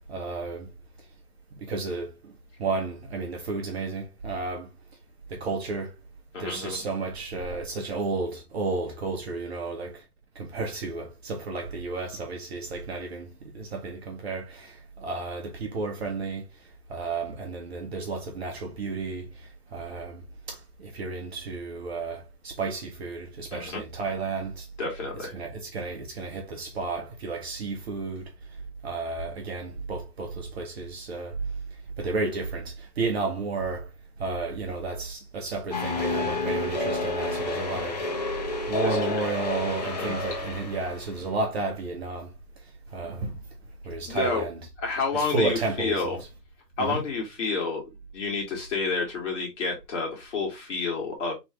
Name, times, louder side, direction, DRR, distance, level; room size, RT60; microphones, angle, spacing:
voice 1, 0.1-0.7 1.6-2.3 2.6-4.7 5.3-5.9 6.4-10.0 10.4-13.3 13.5-16.5 16.9-20.2 20.5-24.7 25.2-28.3 28.8-31.4 32.0-33.9 34.2-38.0 38.7-42.3 42.9-43.3 43.8-44.6 45.1-46.0 46.8-47.0, right 3 dB, 40° right, 0.9 m, -32 dB
voice 2, 6.3-6.8 23.5-23.8 24.8-25.3 38.8-39.2 39.8-40.2 44.1-44.4 44.8-46.2 46.8-47.8 48.1-51.3, left 4 dB, 50° left, 1.9 m, -29 dB
sound 1, 35.7-41.0, left 2 dB, 25° left, 0.5 m, -30 dB
3.2 x 3.0 x 4.5 m
hypercardioid pair, 150°, 48 cm